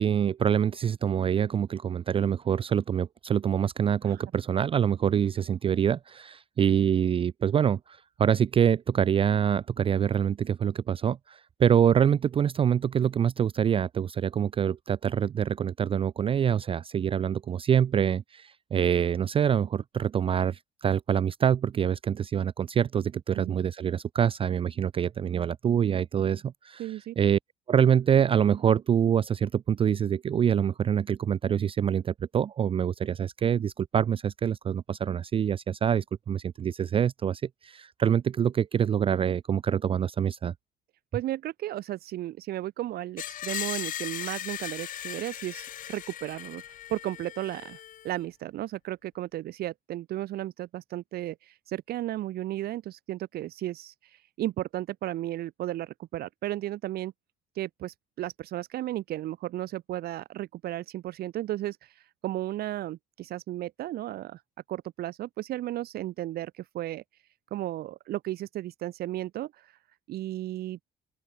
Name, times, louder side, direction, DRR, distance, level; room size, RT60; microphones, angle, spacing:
voice 1, 0.0-27.4 27.7-40.5, right 8 dB, 35° right, 0.4 m, -25 dB
voice 2, 26.8-27.2 41.1-46.6 46.9-57.1 57.5-64.4 64.7-67.0 67.5-69.7 70.1-70.8, right 14 dB, 65° right, 0.9 m, -34 dB
Screech, 43.2-48.1, left 11 dB, 50° left, 0.7 m, -38 dB
open air
cardioid pair, 110°, 17 cm